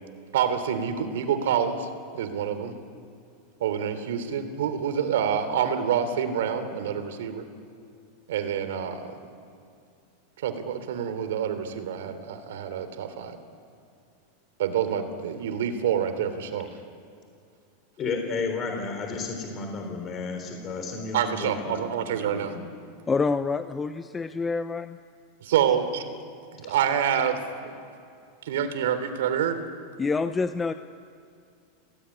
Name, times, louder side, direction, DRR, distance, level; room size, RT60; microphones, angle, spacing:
voice 1, 0.3-1.9 2.1-2.7 3.6-7.5 8.3-9.0 10.4-13.4 14.6-16.7 21.1-22.5 25.4-26.0 26.5-27.8 28.4-29.6, right 8 dB, 80° right, 10 dB, 3.1 m, -27 dB
voice 2, 18.0-22.6 26.6-26.8, left 4 dB, 30° left, 3 dB, 4.0 m, -33 dB
voice 3, 23.1-25.0 30.0-30.7, left 4 dB, 15° left, 10 dB, 0.7 m, -27 dB
29.0 x 18.0 x 9.8 m, 2.4 s
supercardioid pair, 135°, 0 cm